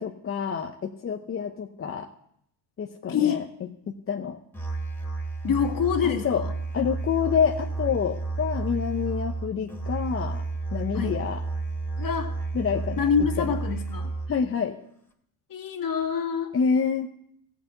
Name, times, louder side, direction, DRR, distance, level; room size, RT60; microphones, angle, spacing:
voice 1, 0.0-2.1 2.8-3.4 4.1-4.4 6.0-6.4 6.7-10.4 10.7-11.4 12.5-13.1 13.4-13.6 14.3-14.7 16.5-17.1, left 6 dB, 25° left, 3 dB, 0.9 m, -27 dB
voice 2, 3.1-3.4 5.4-6.5 10.9-11.2 12.0-12.3 13.0-14.1 15.5-16.5, left 7 dB, 45° left, 3 dB, 2.2 m, -26 dB
Musical instrument, 4.5-14.5, right 3 dB, 5° left, 2.5 m, -32 dB
15.5 x 5.9 x 7.9 m, 0.73 s
supercardioid pair, 90°, 49 cm